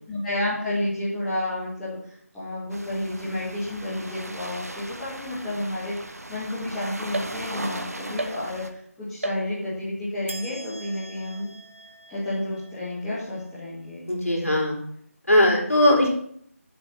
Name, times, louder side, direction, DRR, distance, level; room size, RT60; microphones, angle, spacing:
voice 1, 0.1-11.5 12.1-14.0 14.4-14.6, left 1 dB, 5° left, -11 dB, 1.6 m, -31 dB
sound 1, 2.7-8.7, right 1 dB, 70° right, 1.3 m, -38 dB
sound 2, 7.1-7.8 8.2-8.8 9.2-9.9 10.3-13.7, right 2 dB, 50° right, 1.1 m, -38 dB
voice 2, 14.1-14.8 15.3-16.1, left 1 dB, 65° left, -2 dB, 3.5 m, -19 dB
7.8 x 5.8 x 7.0 m, 0.64 s
figure-of-eight pair, 165°, 8 cm